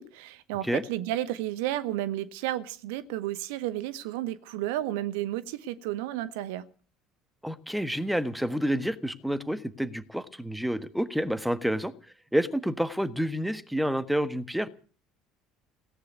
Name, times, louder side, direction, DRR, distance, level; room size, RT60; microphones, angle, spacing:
voice 1, 0.0-6.6, right 14 dB, 60° right, 0.9 m, -32 dB
voice 2, 7.4-11.9 12.3-14.7, equal, ahead, 1.4 m, -29 dB
17.5 x 10.0 x 8.1 m
figure-of-eight pair, 65°, 0 cm